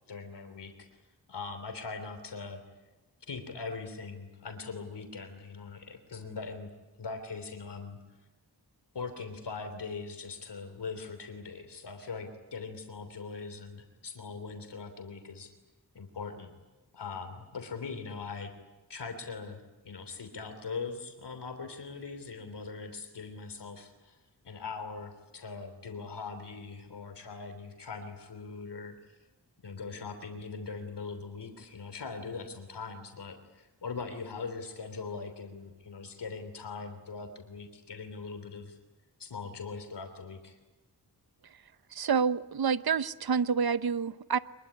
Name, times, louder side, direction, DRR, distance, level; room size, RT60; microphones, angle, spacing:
voice 1, 0.1-0.9 1.3-2.6 3.2-6.7 7.0-8.0 8.9-15.5 15.9-16.6 16.9-18.5 18.9-24.2 24.4-29.2 29.6-38.8 39.2-40.6, left 4 dB, 75° left, 7 dB, 3.2 m, -41 dB
voice 2, 41.9-44.4, right 6 dB, 60° right, 15 dB, 0.9 m, -28 dB
24.5 x 22.0 x 9.9 m, 1.1 s
wide cardioid pair, 80°, 41 cm